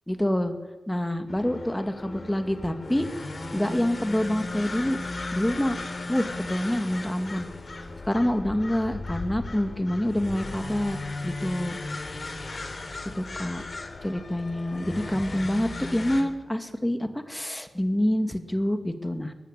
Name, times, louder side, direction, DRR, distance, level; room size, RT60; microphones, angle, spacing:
voice 1, 0.1-0.5 0.9-3.1 3.5-5.0 5.3-5.8 6.1-7.5 8.0-11.0 11.2-11.8 13.2-13.6 14.0-19.3, left 1 dB, 10° left, 7 dB, 2.2 m, -27 dB
sound 1, 1.3-16.2, left 2 dB, 45° left, 3.8 m, -36 dB
23.0 x 19.0 x 10.0 m, 1.2 s
wide cardioid pair, 85°, 0 cm